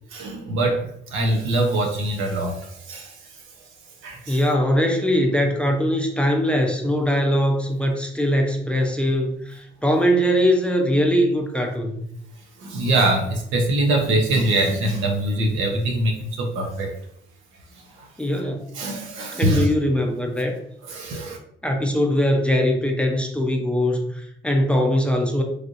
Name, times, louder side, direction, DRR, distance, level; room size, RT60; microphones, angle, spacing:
voice 1, 0.1-3.2 4.0-4.4 12.6-16.9 18.0-18.1 18.4-19.7 20.8-21.4, right 1 dB, 85° right, 2 dB, 0.8 m, -23 dB
voice 2, 4.3-12.0 18.2-18.6 19.3-20.6 21.6-25.4, equal, 5° left, 1 dB, 0.5 m, -21 dB
3.3 x 2.6 x 2.5 m, 0.72 s
cardioid pair, 90°, 20 cm